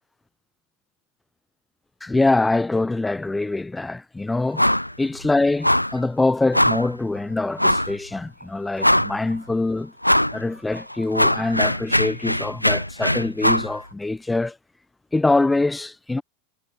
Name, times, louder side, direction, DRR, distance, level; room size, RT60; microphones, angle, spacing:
voice 1, 2.0-4.7 5.0-9.9 10.3-14.6 15.1-16.2, left 2 dB, 10° left, 0.4 m, -24 dB
sound 1, 4.6-4.9 5.2-5.3 5.6-6.0 6.5-6.9 7.6-7.9 8.4-8.5 8.8-9.3 10.0-10.4 10.8-13.7, left 1 dB, 90° left, 0.3 m, -20 dB
figure-of-eight pair, 85°, 0 cm